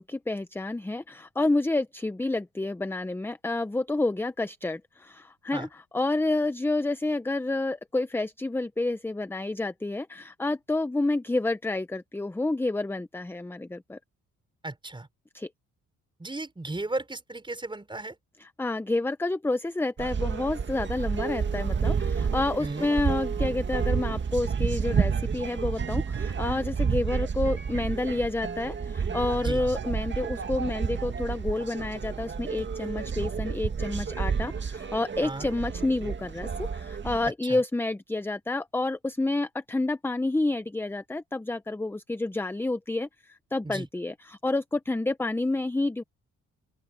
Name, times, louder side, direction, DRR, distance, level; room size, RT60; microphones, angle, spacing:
voice 1, 0.0-14.0 15.3-15.5 18.4-46.0, left 2 dB, 5° left, 0.7 m, -29 dB
voice 2, 14.6-15.1 16.2-18.2 22.6-22.9 29.4-29.6 35.2-35.5 37.5-37.6 43.6-43.9, right 2 dB, 15° right, 4.9 m, -35 dB
sound 1, 20.0-37.3, right 6 dB, 40° right, 2.0 m, -30 dB
open air
cardioid pair, 90°, 30 cm